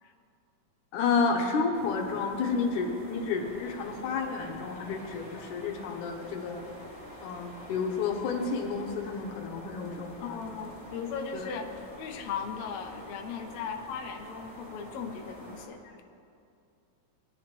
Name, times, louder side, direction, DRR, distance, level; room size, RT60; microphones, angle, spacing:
voice 1, 0.9-6.6 7.2-10.4 11.3-11.5, left 4 dB, 70° left, 2 dB, 2.3 m, -31 dB
sound 1, 1.7-15.7, equal, 10° left, 2.1 m, -47 dB
voice 2, 10.2-11.7 11.9-16.0, left 6 dB, 85° left, 3 dB, 1.5 m, -38 dB
20.0 x 10.5 x 3.1 m, 2.5 s
omnidirectional pair, 4.2 m